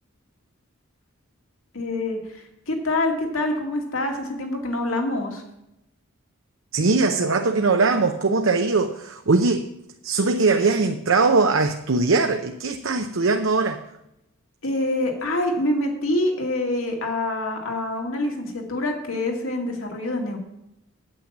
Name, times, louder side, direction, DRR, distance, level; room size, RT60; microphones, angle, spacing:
voice 1, 1.7-5.4 14.6-20.4, left 1 dB, 80° left, 2 dB, 2.4 m, -26 dB
voice 2, 6.7-9.7 10.0-13.8, right 3 dB, 70° right, 5 dB, 0.7 m, -21 dB
8.9 x 8.8 x 7.3 m, 0.85 s
head